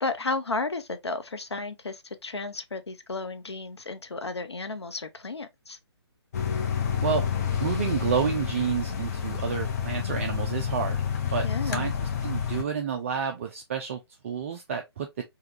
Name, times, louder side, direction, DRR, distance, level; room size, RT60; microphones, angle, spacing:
voice 1, 0.0-5.8 11.4-11.9, left 3 dB, 75° left, 0.7 m, -33 dB
sound 1, 6.3-12.6, left 7 dB, 35° left, 0.6 m, -29 dB
voice 2, 7.6-11.0 11.3-11.9 12.2-15.2, right 7 dB, 30° right, 0.4 m, -30 dB
3.5 x 2.3 x 2.9 m
figure-of-eight pair, 135°, 14 cm